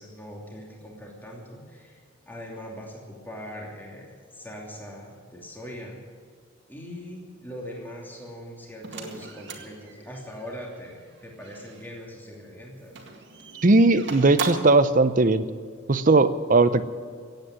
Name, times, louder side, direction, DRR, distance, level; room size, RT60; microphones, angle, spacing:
voice 1, 0.0-2.0 2.3-6.0 6.7-13.0, equal, 10° left, -2 dB, 2.8 m, -41 dB
sound 1, 8.8-11.9 12.9-14.9, right 4 dB, 60° right, 2.0 m, -38 dB
voice 2, 13.6-15.5 15.9-16.8, right 3 dB, 40° right, 13 dB, 0.6 m, -18 dB
15.5 x 9.2 x 9.8 m, 2.1 s
head